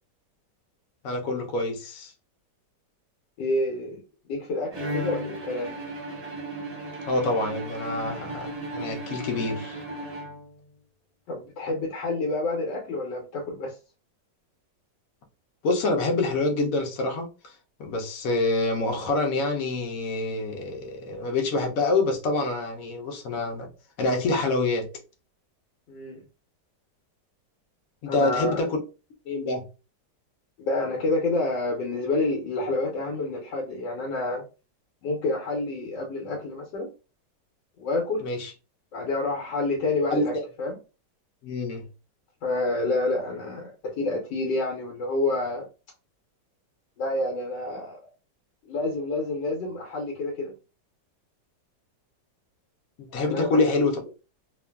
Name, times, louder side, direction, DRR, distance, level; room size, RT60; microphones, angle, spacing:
voice 1, 1.0-2.1 7.1-9.8 15.6-17.3 17.8-23.7 24.0-24.9 28.0-28.8 29.3-29.6 38.2-38.5 40.1-40.4 41.4-41.9 53.0-54.0, left 2 dB, 60° left, 1.0 m, -26 dB
voice 2, 3.4-4.0 4.3-5.8 11.3-13.7 25.9-26.2 28.1-28.6 30.6-34.4 35.0-36.9 37.8-38.2 38.9-40.3 40.6-40.7 42.4-45.7 47.0-48.0 48.7-50.5 53.3-53.6, left 2 dB, 90° left, 1.4 m, -28 dB
Bowed string instrument, 4.7-10.7, right 1 dB, 30° right, 0.7 m, -35 dB
2.9 x 2.4 x 2.2 m
omnidirectional pair, 1.9 m